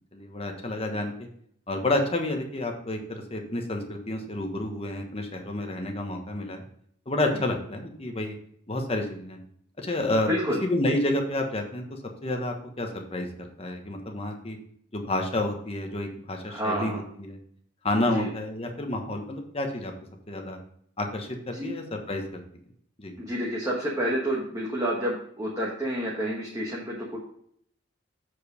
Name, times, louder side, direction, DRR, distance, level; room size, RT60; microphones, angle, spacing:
voice 1, 0.1-1.3 1.7-6.6 7.1-8.3 8.7-9.4 9.8-10.3 10.6-14.6 14.9-17.4 17.8-19.9 20.3-20.6 21.0-22.4 23.0-23.1, left 1 dB, 30° left, 3 dB, 1.2 m, -30 dB
voice 2, 10.3-10.6 16.5-17.0 18.1-18.3 21.5-21.7 23.2-27.2, equal, 15° right, -4 dB, 1.2 m, -29 dB
7.6 x 4.9 x 5.0 m, 0.66 s
head